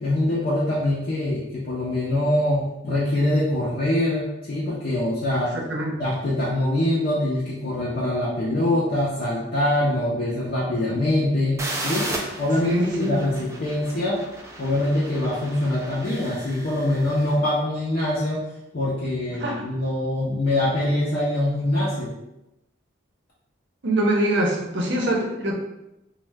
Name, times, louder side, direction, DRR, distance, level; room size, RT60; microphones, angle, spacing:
voice 1, 0.0-5.5 6.0-12.1 12.4-14.2 14.6-18.5 18.7-22.1, left 1 dB, 50° left, -7 dB, 0.5 m, -24 dB
voice 2, 5.5-6.0 12.6-13.2 19.4-19.5 23.8-25.5, right 1 dB, 60° right, -1 dB, 0.6 m, -23 dB
sound 1, 11.6-17.3, right 2 dB, 15° right, 0.3 m, -35 dB
2.6 x 2.1 x 3.3 m, 0.90 s
head